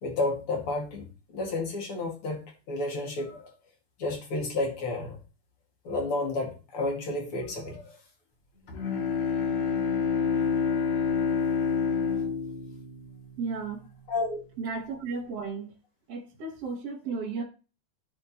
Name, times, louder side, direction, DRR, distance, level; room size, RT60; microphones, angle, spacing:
voice 1, 0.0-1.1 1.3-3.5 4.0-5.2 5.8-8.0 10.7-10.8 14.1-14.4, left 2 dB, 40° left, 1 dB, 2.8 m, -31 dB
Bowed string instrument, 8.7-13.8, left 6 dB, 55° left, 2.5 m, -28 dB
voice 2, 13.4-13.9 14.6-15.7 16.1-17.4, right 4 dB, 55° right, -1 dB, 2.0 m, -34 dB
11.0 x 4.2 x 4.2 m, 0.33 s
omnidirectional pair, 4.2 m